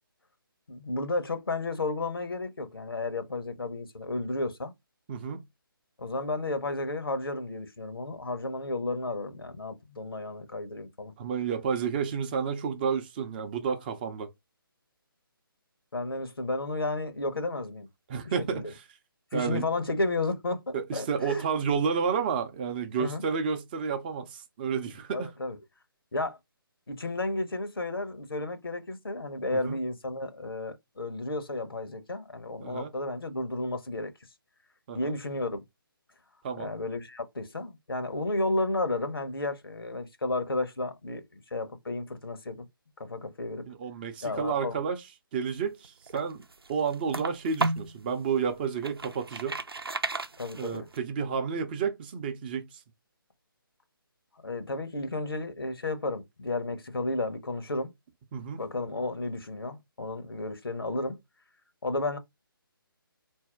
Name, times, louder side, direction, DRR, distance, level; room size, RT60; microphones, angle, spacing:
voice 1, 0.7-4.7 6.0-11.1 15.9-17.9 18.5-18.6 19.3-21.4 23.0-23.2 25.1-25.6 26.1-26.4 26.9-34.1 34.9-35.6 36.6-42.7 43.0-43.7 44.2-44.8 50.4-50.9 54.4-57.9 58.6-61.2 61.8-62.2, left 2 dB, 75° left, 1.0 m, -32 dB
voice 2, 5.1-5.4 11.2-14.3 18.1-18.8 19.3-19.6 20.7-25.3 29.5-29.8 32.6-32.9 34.9-35.1 36.4-36.7 43.7-45.0 45.3-49.6 50.5-52.8 58.3-58.6, right 6 dB, 25° right, 0.6 m, -31 dB
sound 1, 45.8-48.0 48.5-51.0, right 3 dB, 80° right, 0.7 m, -33 dB
4.2 x 2.7 x 3.5 m
figure-of-eight pair, 145°, 12 cm